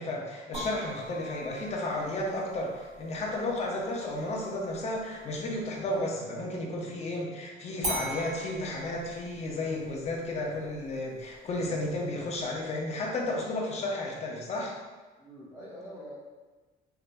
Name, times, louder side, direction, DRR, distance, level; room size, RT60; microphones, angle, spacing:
voice 1, 0.0-14.8, left 1 dB, 40° left, -1 dB, 0.7 m, -33 dB
sound 1, 0.5-6.1 7.8-12.8, right 1 dB, 45° right, 1.4 m, -43 dB
voice 2, 15.2-16.1, equal, 15° right, -10 dB, 0.8 m, -46 dB
3.4 x 2.8 x 2.5 m, 1.3 s
cardioid pair, 110°, 17 cm